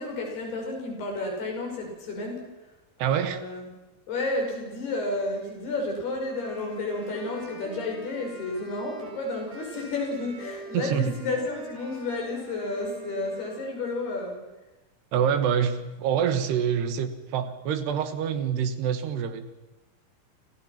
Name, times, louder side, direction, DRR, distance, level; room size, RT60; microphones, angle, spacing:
voice 1, 0.0-2.4 3.0-3.7 4.1-14.4, left 2 dB, 75° left, 1 dB, 8.2 m, -31 dB
voice 2, 3.0-3.4 10.7-11.1 15.1-19.4, right 8 dB, 85° right, 9 dB, 3.8 m, -26 dB
sound 1, 6.2-13.7, right 2 dB, 60° right, 8.5 m, -45 dB
28.0 x 27.5 x 6.0 m, 1.1 s
omnidirectional pair, 4.6 m